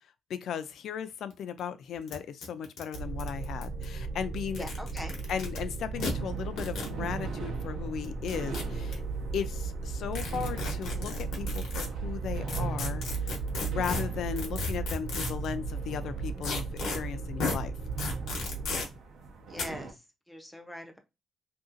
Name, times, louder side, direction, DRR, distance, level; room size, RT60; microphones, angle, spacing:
voice 1, 0.3-4.7 5.3-9.0 9.3-13.0 13.6-16.7 16.9-17.7, left 8 dB, 60° left, 0.3 m, -36 dB
sound 1, 1.3-1.4 1.6-1.7 2.1-2.2 2.4-3.8 4.4-5.6 6.0-6.1 6.6-6.9 8.0-8.9 10.1-11.9 12.5-15.5 16.4-17.0 17.4-17.6 18.0-18.9 19.6-19.7, left 3 dB, 75° left, 0.9 m, -34 dB
sound 2, 2.9-18.8, right 4 dB, 55° right, 0.3 m, -36 dB
voice 2, 4.6-5.2 19.5-21.0, left 1 dB, 5° left, 0.5 m, -42 dB
sound 3, 5.9-19.9, right 4 dB, 80° right, 0.7 m, -42 dB
2.8 x 2.6 x 2.5 m
cardioid pair, 165°, 0 cm